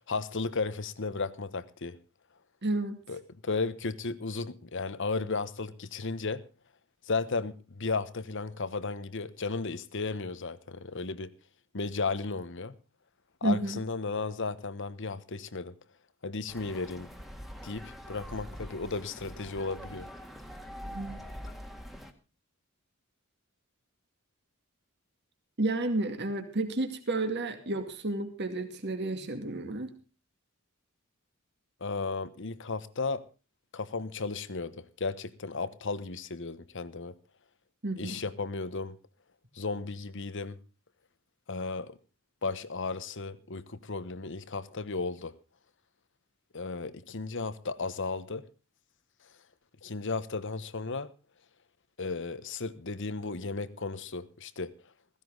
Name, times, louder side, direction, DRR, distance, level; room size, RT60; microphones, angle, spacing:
voice 1, 0.0-2.0 3.1-6.4 7.0-11.3 11.7-12.7 13.4-15.7 16.2-17.1 17.6-20.1 31.8-33.2 33.7-37.1 38.0-39.0 39.5-40.6 41.5-42.0 42.4-45.3 46.5-48.4 49.8-51.1 52.0-54.7, left 4 dB, 60° left, 1.1 m, -34 dB
voice 2, 2.6-3.0 13.4-13.8 20.9-21.2 25.6-29.9 37.8-38.2, right 2 dB, 50° right, 2.3 m, -31 dB
sound 1, 16.5-22.1, equal, ahead, 1.7 m, -44 dB
16.0 x 16.0 x 3.9 m
head